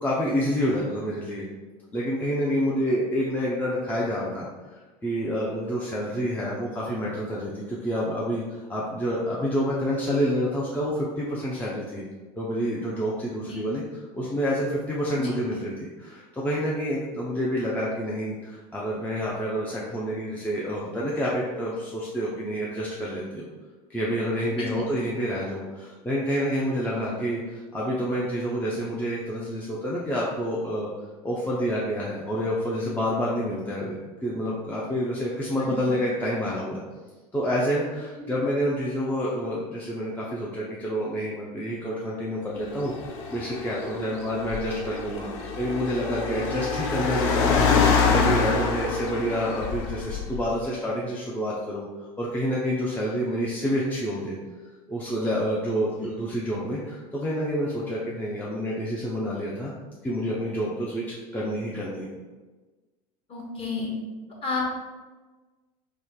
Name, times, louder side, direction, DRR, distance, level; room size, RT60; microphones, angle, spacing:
voice 1, 0.0-1.5 1.9-12.0 12.4-13.8 14.1-23.5 23.9-30.9 31.2-36.8 37.3-42.9 43.3-45.3 45.6-47.7 48.1-51.9 52.2-54.4 54.9-59.7 60.0-62.1, equal, 10° left, -6 dB, 0.5 m, -28 dB
Car, 42.6-50.6, left 5 dB, 60° left, 0.5 m, -26 dB
voice 2, 63.3-63.9 64.4-64.7, left 4 dB, 30° left, -2 dB, 1.0 m, -31 dB
3.1 x 2.0 x 3.7 m, 1.3 s
figure-of-eight pair, 75°, 20 cm